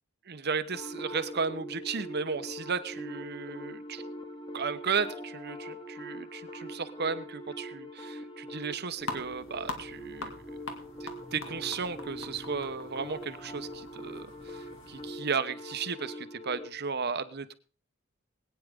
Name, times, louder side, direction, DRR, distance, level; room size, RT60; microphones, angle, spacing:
voice 1, 0.3-4.0 4.5-10.3 11.0-17.5, right 5 dB, 55° right, 12 dB, 1.0 m, -34 dB
sound 1, 0.7-16.7, equal, 20° left, 1.6 m, -43 dB
sound 2, 9.0-15.1, left 3 dB, 75° left, 2.2 m, -43 dB
20.5 x 9.5 x 3.7 m, 0.37 s
head